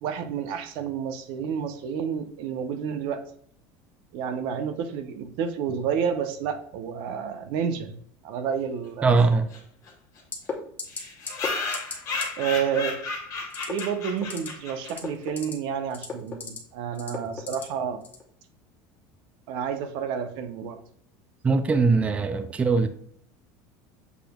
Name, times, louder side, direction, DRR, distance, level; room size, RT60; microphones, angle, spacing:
voice 1, 0.0-3.3 4.1-7.9 8.2-9.2 12.4-13.0 13.7-18.0 19.5-20.8, right 7 dB, 60° right, 0.7 m, -30 dB
voice 2, 9.0-9.5 21.4-22.9, right 4 dB, 15° right, 0.3 m, -21 dB
sound 1, 9.2-9.3 9.5-9.6 9.9-10.0 10.2-10.3 10.9-15.1, left 4 dB, 35° left, 1.5 m, -33 dB
sound 2, 10.3-10.5 10.8-11.0 11.3-11.5 11.7-12.0 12.2-12.3 13.5-13.8 14.2-14.5 14.8-15.5 15.9-16.6 17.0-17.6 18.0-18.2, left 5 dB, 20° left, 0.9 m, -33 dB
7.0 x 3.2 x 2.3 m
cardioid pair, 145°, 9 cm